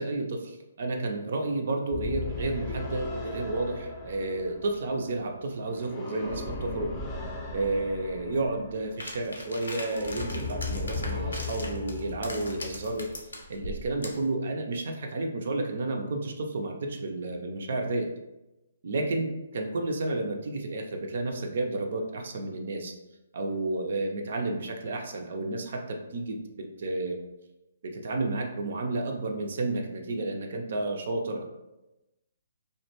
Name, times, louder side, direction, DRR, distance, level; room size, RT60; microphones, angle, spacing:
voice 1, 0.0-6.9 7.5-13.1 13.5-18.1 18.8-22.9 23.3-27.2 27.8-31.4, right 2 dB, 60° right, 3 dB, 0.4 m, -31 dB
sound 1, 1.9-13.1, left 3 dB, 20° left, 0.5 m, -37 dB
sound 2, 9.0-14.3, left 2 dB, 85° left, 0.5 m, -40 dB
2.4 x 2.1 x 2.9 m, 0.97 s
figure-of-eight pair, 140°, 0 cm